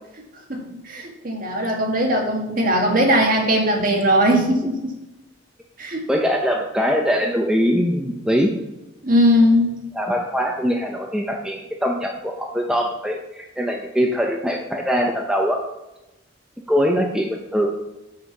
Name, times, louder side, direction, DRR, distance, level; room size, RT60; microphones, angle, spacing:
voice 1, 0.5-4.9 5.8-6.0 9.0-9.7, equal, 45° right, 0 dB, 1.9 m, -19 dB
voice 2, 6.1-8.5 9.9-15.6 16.7-17.7, equal, 5° right, 0 dB, 0.7 m, -22 dB
6.5 x 5.6 x 7.2 m, 0.97 s
head